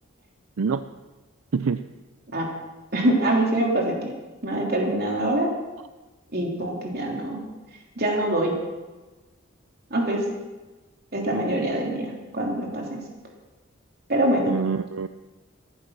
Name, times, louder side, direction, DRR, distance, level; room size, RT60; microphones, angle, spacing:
voice 1, 2.9-4.1 4.4-5.5 6.3-7.4 8.0-8.5 9.9-10.2 11.1-13.0 14.1-14.5, right 1 dB, 50° right, 0 dB, 3.1 m, -24 dB
voice 2, 14.5-15.1, right 5 dB, 80° right, 11 dB, 0.5 m, -25 dB
14.0 x 11.5 x 6.1 m, 1.2 s
head